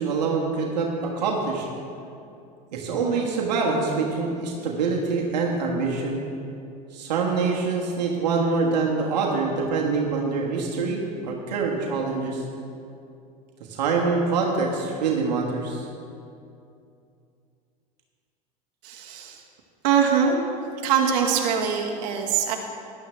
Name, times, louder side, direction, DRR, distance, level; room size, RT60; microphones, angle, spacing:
voice 1, 0.0-1.7 2.7-6.2 6.9-12.5 13.7-15.9, right 4 dB, 85° right, -1 dB, 1.5 m, -25 dB
voice 2, 18.8-19.4 19.8-20.4 20.8-22.6, right 7 dB, 70° right, 0 dB, 1.5 m, -23 dB
13.5 x 11.0 x 3.4 m, 2.5 s
hypercardioid pair, 90°, 21 cm